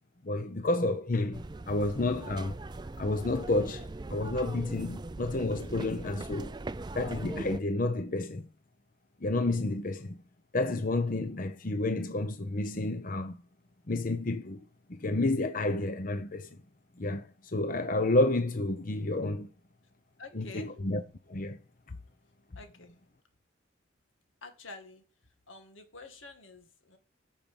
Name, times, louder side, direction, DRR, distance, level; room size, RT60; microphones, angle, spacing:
voice 1, 0.2-2.6 3.0-6.5 6.9-8.4 9.2-10.2 10.5-13.4 13.9-14.6 14.9-16.5 17.0-19.5 20.3-21.0 21.3-21.6 21.9-22.0, left 2 dB, 45° left, 0.8 m, -30 dB
sound 1, 1.3-7.6, right 2 dB, 20° right, 0.4 m, -41 dB
voice 2, 20.2-20.7 22.6-23.0 24.4-25.0 25.5-27.0, left 3 dB, 85° left, 2.2 m, -48 dB
9.2 x 6.1 x 7.0 m
head